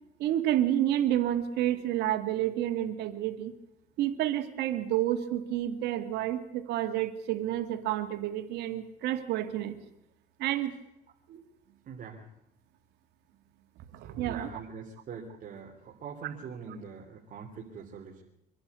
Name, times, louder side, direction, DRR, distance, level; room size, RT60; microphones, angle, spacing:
voice 1, 0.2-3.5 4.0-9.8 10.4-10.7 11.3-11.4 13.9-14.5, right 12 dB, 85° right, 7 dB, 2.2 m, -29 dB
voice 2, 11.9-12.3 14.3-18.2, right 6 dB, 55° right, -1 dB, 3.4 m, -43 dB
25.0 x 11.5 x 9.7 m, 0.83 s
cardioid pair, 110°, 17 cm